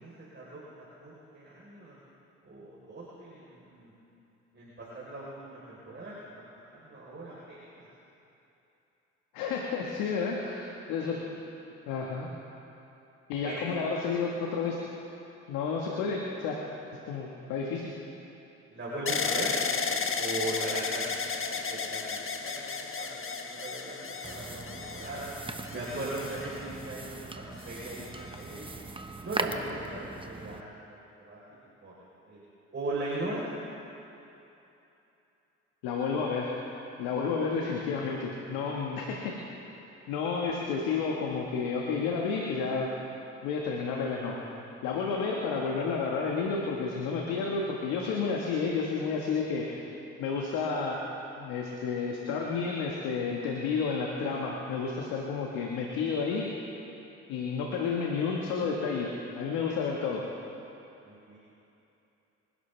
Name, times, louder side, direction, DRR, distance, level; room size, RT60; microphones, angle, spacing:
voice 1, 0.0-2.0 2.4-3.9 4.5-6.5 6.7-7.9 10.2-10.3 11.0-11.2 13.4-13.6 15.9-16.0 18.7-19.5 20.2-21.1 21.5-25.3 25.7-28.7 29.2-31.4 31.8-31.9 32.3-32.4 32.7-33.5 39.9-40.0 61.1-61.4, right 2 dB, 35° right, -7 dB, 4.2 m, -39 dB
voice 2, 9.3-11.2 11.9-12.3 13.3-14.8 15.5-16.6 17.1-17.9 35.8-36.5 37.0-39.3 40.1-42.9 43.4-44.3 44.8-49.8 50.2-51.0 51.4-56.5 57.3-60.2, left 5 dB, 80° left, -1 dB, 1.7 m, -31 dB
sound 1, 19.1-27.1 27.8-28.4, left 5 dB, 40° left, 1.5 m, -34 dB
sound 2, 24.2-30.6, right 2 dB, 15° right, 1.2 m, -40 dB
25.5 x 12.0 x 3.4 m, 2.9 s
hypercardioid pair, 50°, 34 cm